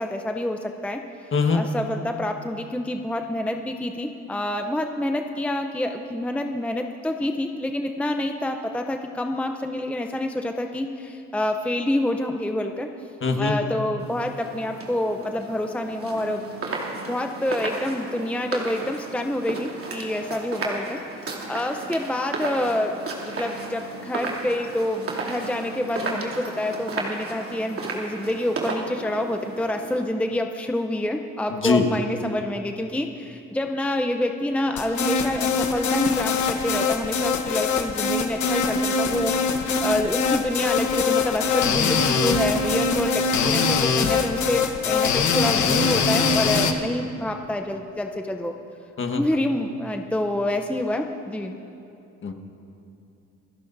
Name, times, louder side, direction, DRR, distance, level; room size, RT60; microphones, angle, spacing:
voice 1, 0.0-12.9 13.3-21.0 21.5-23.0 23.3-48.5 49.1-51.5, left 1 dB, 5° left, 4 dB, 0.7 m, -27 dB
voice 2, 13.2-13.5 31.6-31.8 49.0-49.2 52.2-52.3, left 5 dB, 40° left, 5 dB, 1.5 m, -21 dB
sound 1, 14.0-30.0, right 3 dB, 50° right, 2.8 m, -34 dB
sound 2, 34.8-46.7, left 5 dB, 75° left, 1.2 m, -23 dB
27.5 x 16.0 x 2.7 m, 2.7 s
cardioid pair, 90°, 30 cm